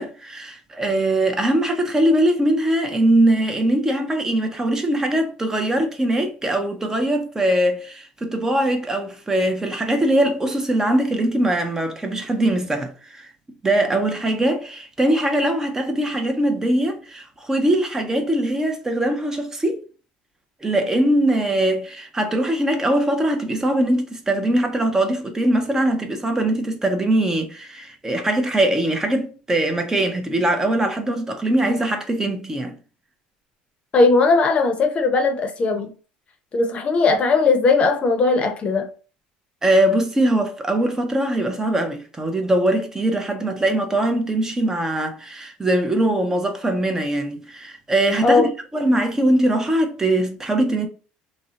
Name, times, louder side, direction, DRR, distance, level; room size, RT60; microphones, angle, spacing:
voice 1, 0.0-13.3 13.6-19.8 20.6-32.7 39.6-50.9, right 1 dB, 15° right, 0.5 m, -21 dB
voice 2, 33.9-35.9 36.5-38.9 48.2-48.5, left 3 dB, 35° left, 0.6 m, -18 dB
2.5 x 2.0 x 2.7 m
cardioid pair, 115°, 3 cm